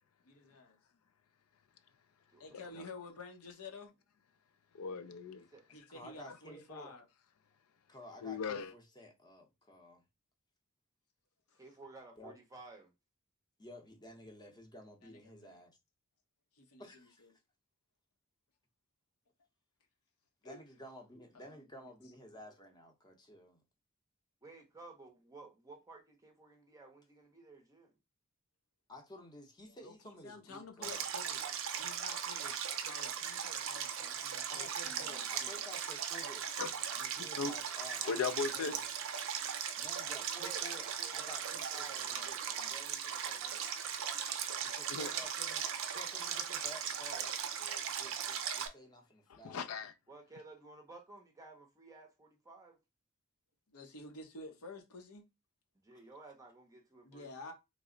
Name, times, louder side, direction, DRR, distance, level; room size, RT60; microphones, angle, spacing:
voice 1, 0.2-0.8 2.4-3.9 5.7-7.1 11.5-11.6 15.0-15.6 16.6-17.3 20.4-20.6 21.3-21.9 29.8-31.4 31.8-35.6 53.7-55.2 57.0-57.5, left 3 dB, 90° left, 0.8 m, -51 dB
voice 2, 2.3-2.9 5.4-5.7 11.6-12.9 24.4-27.9 40.1-43.6 50.1-52.8 55.7-57.3, right 3 dB, 15° right, 0.6 m, -55 dB
voice 3, 4.7-5.5 8.2-8.7 36.6-37.5 38.1-38.7 44.9-45.1 49.3-49.9, left 5 dB, 70° left, 0.4 m, -38 dB
voice 4, 5.7-6.9 7.9-10.0 12.2-12.3 13.6-15.8 16.8-17.3 20.4-23.6 28.9-31.0 34.5-36.5 36.9-38.8 39.7-42.4 44.6-45.6 45.9-49.7, left 1 dB, 20° left, 0.7 m, -53 dB
Stream, 30.8-48.7, right 8 dB, 65° right, 0.5 m, -38 dB
3.2 x 2.0 x 3.7 m
head